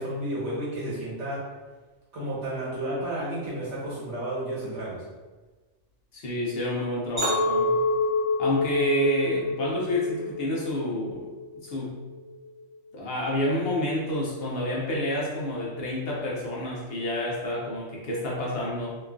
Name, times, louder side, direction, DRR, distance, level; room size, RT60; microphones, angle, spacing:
voice 1, 0.0-1.4 2.1-5.0, right 1 dB, 70° right, -7 dB, 1.3 m, -32 dB
voice 2, 6.1-7.8 8.4-11.3 11.6-12.0 12.9-19.0, left 1 dB, 60° left, -4 dB, 0.7 m, -29 dB
Chink clink, 7.2-11.5 12.0-12.4, left 2 dB, 30° right, 0.7 m, -27 dB
2.9 x 2.3 x 2.3 m, 1.2 s
omnidirectional pair, 1.2 m